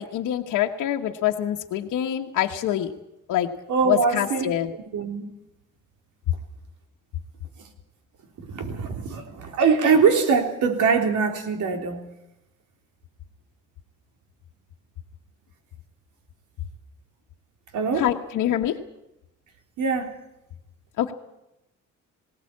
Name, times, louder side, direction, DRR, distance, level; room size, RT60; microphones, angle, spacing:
voice 1, 0.0-2.9 3.3-3.5 3.9-4.7 18.0-18.8 21.0-21.1, left 12 dB, 85° left, 1 dB, 1.3 m, -25 dB
voice 2, 3.7-4.5 4.9-5.2 8.4-12.0 17.7-18.0 19.8-20.1, right 5 dB, 80° right, 4 dB, 3.8 m, -22 dB
20.0 x 17.5 x 8.6 m, 0.89 s
cardioid pair, 90°, 30 cm